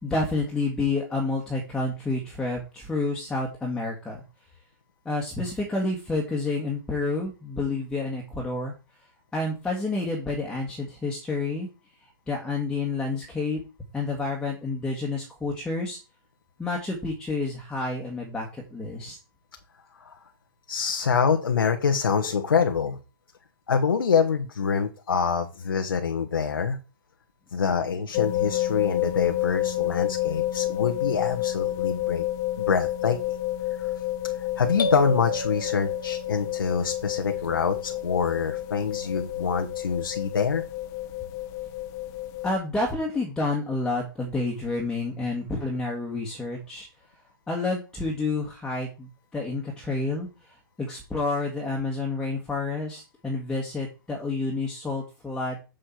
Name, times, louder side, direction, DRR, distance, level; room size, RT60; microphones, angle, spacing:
voice 1, 0.0-4.2 5.0-8.7 9.3-11.7 12.0-13.6 13.9-16.0 16.6-19.2 42.4-46.9 47.5-55.6, left 3 dB, 5° left, -1 dB, 1.6 m, -29 dB
voice 2, 20.7-23.0 23.7-26.8 27.5-32.2 32.6-33.4 33.8-33.9 34.6-40.6, left 6 dB, 85° left, 5 dB, 1.3 m, -25 dB
sound 1, 28.1-42.5, left 14 dB, 30° left, 0.6 m, -29 dB
sound 2, 34.8-36.7, left 1 dB, 65° left, 1.1 m, -31 dB
7.6 x 6.7 x 4.5 m, 0.32 s
hypercardioid pair, 140°, 11 cm